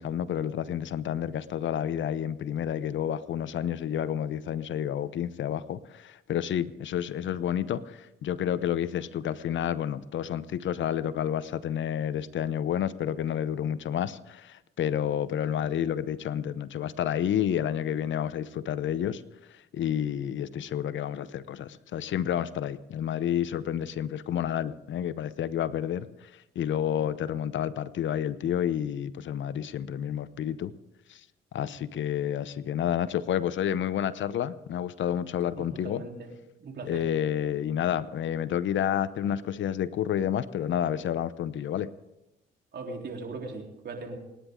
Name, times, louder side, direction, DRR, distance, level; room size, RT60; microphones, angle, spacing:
voice 1, 0.0-19.2 19.7-26.1 26.6-30.7 31.1-31.2 31.5-36.0 36.8-41.9, left 10 dB, 65° left, 15 dB, 0.8 m, -30 dB
voice 2, 35.6-36.3 36.6-37.1 42.7-44.2, right 3 dB, 50° right, 2 dB, 3.6 m, -39 dB
28.5 x 10.0 x 3.7 m, 0.94 s
supercardioid pair, 65°, 21 cm